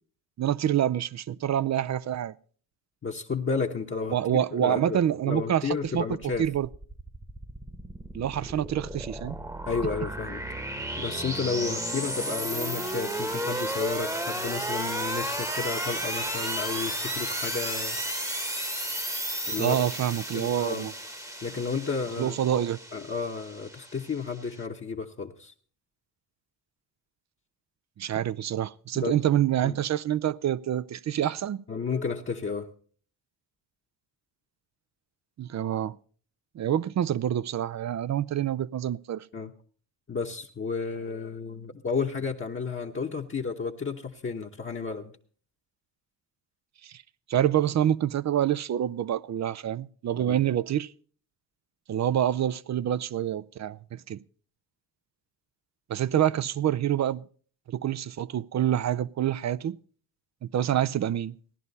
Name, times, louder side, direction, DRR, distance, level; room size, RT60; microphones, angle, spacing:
voice 1, 0.4-2.3 4.1-6.0 6.4-6.7 8.1-9.4 19.6-20.9 22.2-22.8 28.0-31.6 35.4-36.0 36.5-39.3 46.8-47.0 47.3-50.9 51.9-54.2 55.9-57.2 57.7-59.8 60.4-61.3, right 10 dB, 45° right, 0.5 m, -27 dB
voice 2, 3.0-5.0 5.2-6.4 9.7-10.4 11.0-18.0 19.5-19.8 20.3-20.9 21.4-22.4 22.9-25.5 28.9-29.2 29.6-29.8 31.7-32.7 39.3-39.5 40.1-45.1 50.2-50.4, left 5 dB, 30° left, 1.0 m, -32 dB
sound 1, 6.2-24.6, right 1 dB, 10° right, 1.1 m, -33 dB
16.5 x 11.0 x 4.0 m
cardioid pair, 80°, 42 cm